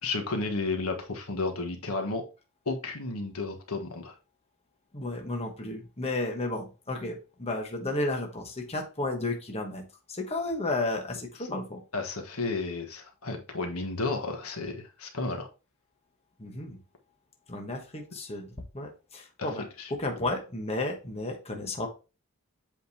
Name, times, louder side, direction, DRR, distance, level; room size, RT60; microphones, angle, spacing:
voice 1, 0.0-2.2 2.6-4.2 11.9-15.5 19.4-19.9, left 3 dB, 80° left, 4 dB, 1.4 m, -32 dB
voice 2, 4.9-11.8 16.4-16.8 17.5-18.5 18.7-21.9, left 2 dB, 30° left, 2 dB, 1.2 m, -33 dB
7.7 x 5.1 x 2.8 m, 0.31 s
head